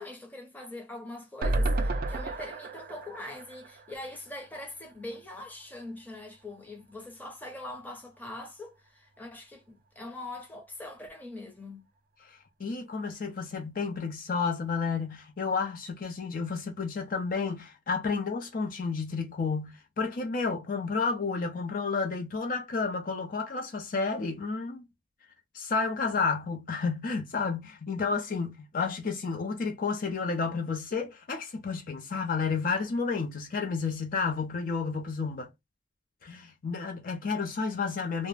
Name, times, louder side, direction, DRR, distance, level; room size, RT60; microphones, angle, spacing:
voice 1, 0.0-11.8, left 2 dB, 10° left, 0.7 m, -42 dB
sound 1, 1.4-4.7 5.0-5.1 5.3-5.4, right 2 dB, 50° right, 0.4 m, -31 dB
voice 2, 12.3-24.8 25.5-35.5 36.2-38.3, left 4 dB, 50° left, 0.5 m, -31 dB
2.3 x 2.1 x 3.2 m
head